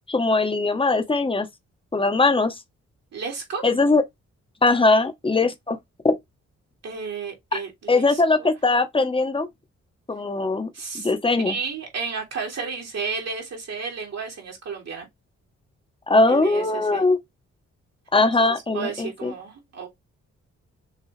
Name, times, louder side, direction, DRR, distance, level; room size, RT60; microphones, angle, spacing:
voice 1, 0.1-1.5 1.9-2.5 3.6-4.0 4.6-5.8 6.0-6.1 7.5-7.6 7.9-9.5 10.1-10.7 10.9-11.6 16.1-17.2 18.1-19.3, left 3 dB, 20° left, 1.0 m, -20 dB
voice 2, 3.1-3.7 6.8-8.5 10.7-11.1 11.5-15.1 16.3-17.0 18.2-18.5 18.7-19.9, right 5 dB, 60° right, 2.4 m, -32 dB
6.5 x 2.3 x 3.2 m
cardioid pair, 60°, 29 cm